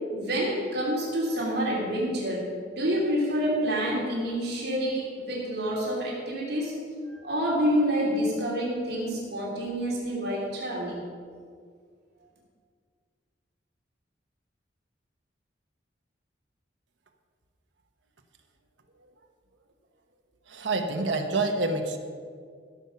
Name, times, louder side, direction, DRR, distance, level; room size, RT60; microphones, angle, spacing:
voice 1, 0.1-6.7 7.1-11.0, equal, 60° right, -5 dB, 3.0 m, -28 dB
voice 2, 20.5-22.0, right 2 dB, 80° right, 4 dB, 1.1 m, -27 dB
15.0 x 7.1 x 5.8 m, 2.1 s
head